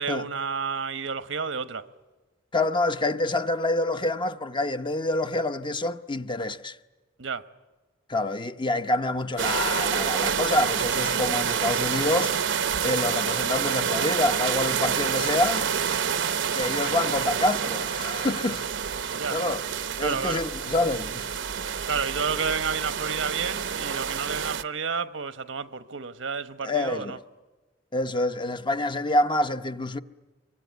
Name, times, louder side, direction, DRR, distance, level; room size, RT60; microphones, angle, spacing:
voice 1, 0.0-1.9 7.2-7.5 19.2-19.4 20.0-20.5 21.9-27.2, right 5 dB, 85° right, 1.1 m, -30 dB
voice 2, 2.5-6.8 8.1-12.3 12.8-15.7 16.5-18.7 19.3-19.6 20.0-21.4 26.6-27.2 27.9-30.0, left 2 dB, 25° left, 0.8 m, -27 dB
sound 1, 9.4-24.6, right 7 dB, 70° right, 0.8 m, -28 dB
24.5 x 24.5 x 9.4 m
head